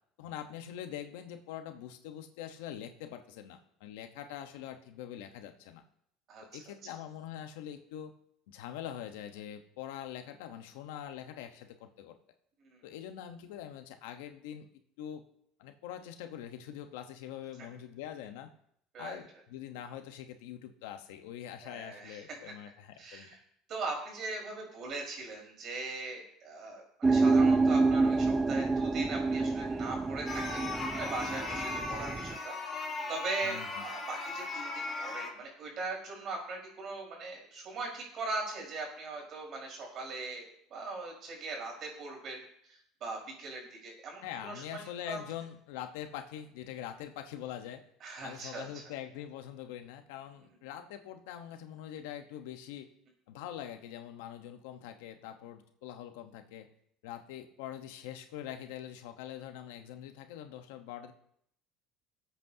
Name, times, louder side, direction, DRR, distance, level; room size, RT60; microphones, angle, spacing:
voice 1, 0.2-5.8 6.5-8.1 8.5-12.2 12.8-14.7 15.0-15.2 15.6-18.5 19.0-23.3 33.4-33.9 44.2-47.8 48.2-52.9 53.3-56.7 57.0-61.1, left 10 dB, 90° left, 7 dB, 1.0 m, -44 dB
voice 2, 21.6-22.4 23.0-23.4 23.7-30.6 30.9-40.4 40.7-42.4 42.7-45.2 48.0-48.8, right 3 dB, 45° right, 0 dB, 4.6 m, -40 dB
sound 1, 27.0-32.4, right 3 dB, 15° right, 0.5 m, -28 dB
sound 2, 30.3-35.3, left 3 dB, 20° left, 3.3 m, -38 dB
19.5 x 8.2 x 2.8 m, 0.69 s
cardioid pair, 125°, 0 cm